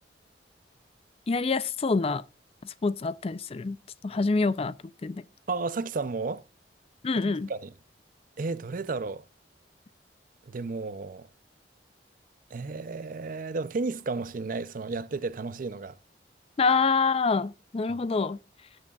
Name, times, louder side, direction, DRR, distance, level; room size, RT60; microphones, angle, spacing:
voice 1, 1.3-2.2 2.6-3.8 4.0-4.7 5.0-5.2 7.0-7.5 16.6-18.4, left 4 dB, 35° left, 0.4 m, -26 dB
voice 2, 5.5-6.4 7.2-7.7 8.4-9.2 10.5-11.3 12.5-16.0 17.9-18.0, right 3 dB, 50° right, 0.5 m, -33 dB
16.5 x 6.3 x 2.3 m
head